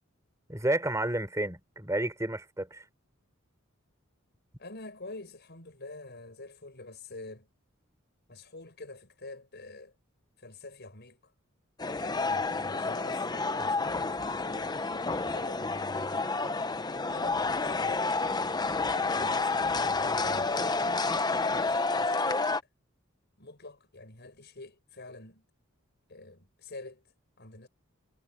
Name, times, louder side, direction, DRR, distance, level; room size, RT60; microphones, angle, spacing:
voice 1, 0.5-2.8, right 1 dB, 15° right, 4.0 m, -31 dB
voice 2, 4.6-7.5 8.3-9.9 10.4-11.3 11.8-16.3 17.0-18.1 19.1-20.5 21.4-22.4 23.4-25.4 26.1-27.0 27.4-27.7, left 2 dB, 55° left, 6.6 m, -47 dB
sound 1, 11.8-22.6, left 3 dB, 20° left, 0.8 m, -29 dB
head